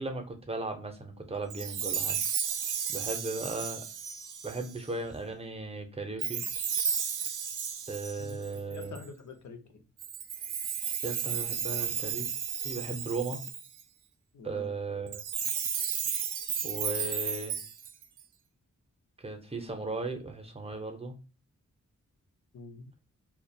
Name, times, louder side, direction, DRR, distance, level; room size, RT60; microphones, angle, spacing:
voice 1, 0.0-2.2 2.9-3.9 4.4-6.4 7.9-9.0 11.0-12.3 12.6-13.4 14.4-15.2 16.6-17.6 19.2-21.1, right 3 dB, 20° right, 5 dB, 0.5 m, -36 dB
Chime, 1.5-4.8 6.2-9.0 10.0-13.8 15.1-18.2, right 7 dB, 80° right, 0.4 m, -33 dB
voice 2, 8.2-9.8 14.3-14.7 22.5-22.9, left 4 dB, 65° left, 5 dB, 0.6 m, -47 dB
2.3 x 2.1 x 2.5 m, 0.35 s
wide cardioid pair, 100°, 30 cm